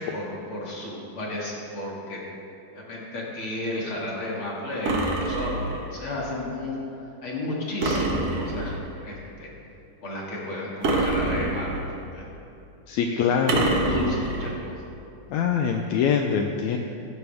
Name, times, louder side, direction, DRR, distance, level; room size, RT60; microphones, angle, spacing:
voice 1, 0.0-2.2 2.7-5.6 5.9-6.8 7.2-9.5 10.0-11.7 12.1-12.2 13.0-13.2 13.6-14.7, left 1 dB, 40° left, -4 dB, 2.7 m, -32 dB
sound 1, 4.9-5.9 7.8-8.9 10.8-12.0 13.5-14.6, right 2 dB, 55° right, 2.2 m, -26 dB
voice 2, 12.9-13.6 15.3-16.8, left 7 dB, 80° left, 3 dB, 1.6 m, -23 dB
16.5 x 14.0 x 3.5 m, 2.7 s
omnidirectional pair, 3.9 m